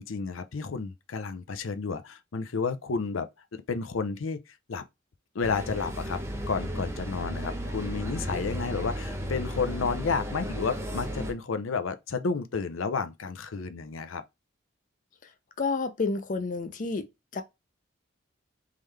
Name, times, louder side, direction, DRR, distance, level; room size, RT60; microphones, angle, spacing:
voice 1, 0.0-3.3 3.7-4.4 4.7-4.8 5.3-6.2 6.5-14.2, left 5 dB, 85° left, 0.6 m, -31 dB
sound 1, 5.4-11.3, equal, 15° right, 0.8 m, -34 dB
voice 2, 15.6-17.0 17.3-17.4, left 4 dB, 40° left, 0.5 m, -29 dB
3.7 x 3.2 x 3.2 m
head